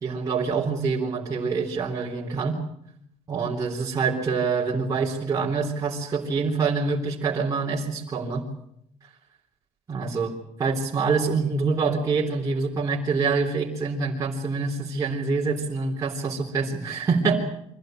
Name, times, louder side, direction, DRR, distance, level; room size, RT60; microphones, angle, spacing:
voice 1, 0.0-2.6 3.3-8.4 9.9-17.4, right 4 dB, 30° right, -4 dB, 3.5 m, -26 dB
24.5 x 16.0 x 9.0 m, 0.75 s
cardioid pair, 125°, 12 cm